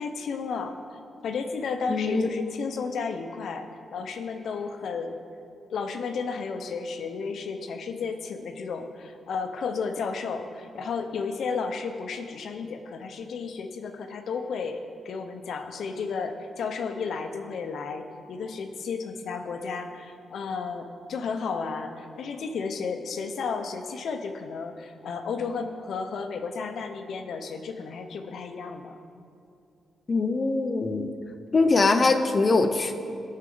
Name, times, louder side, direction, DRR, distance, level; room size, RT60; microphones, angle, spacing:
voice 1, 0.0-5.2 5.7-28.9, left 5 dB, 70° left, 6 dB, 0.8 m, -33 dB
voice 2, 1.9-2.3 30.1-31.1 31.5-32.9, left 3 dB, 30° left, 7 dB, 0.6 m, -22 dB
17.0 x 6.5 x 3.9 m, 2.5 s
wide cardioid pair, 135°, 0 cm